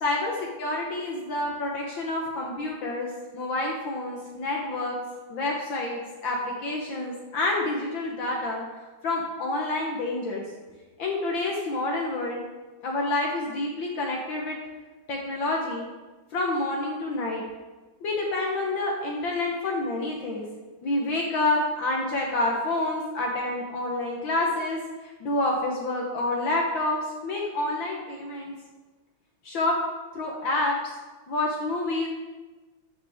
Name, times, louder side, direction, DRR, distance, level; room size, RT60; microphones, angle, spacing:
voice 1, 0.0-0.3 0.6-5.0 5.3-8.6 9.0-10.4 11.0-12.4 12.8-14.6 15.1-15.9 16.3-17.4 18.0-20.4 20.8-28.5 29.4-29.8 30.2-30.8 31.3-32.1, left 2 dB, 70° left, -1 dB, 1.8 m, -28 dB
14.5 x 6.1 x 3.6 m, 1.3 s
omnidirectional pair, 2.3 m